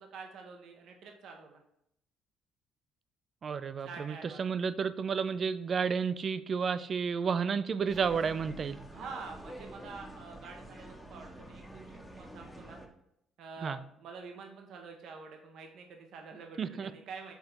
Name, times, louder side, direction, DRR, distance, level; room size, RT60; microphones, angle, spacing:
voice 1, 0.0-1.6 3.8-4.5 8.9-12.8 13.4-17.3, right 4 dB, 70° right, 3 dB, 0.9 m, -47 dB
voice 2, 3.4-8.8 13.6-13.8 16.6-16.9, right 6 dB, 45° right, 14 dB, 0.3 m, -31 dB
sound 1, 7.9-12.9, right 1 dB, 5° left, 0.8 m, -48 dB
5.6 x 3.7 x 4.4 m, 0.76 s
cardioid pair, 95°, 0 cm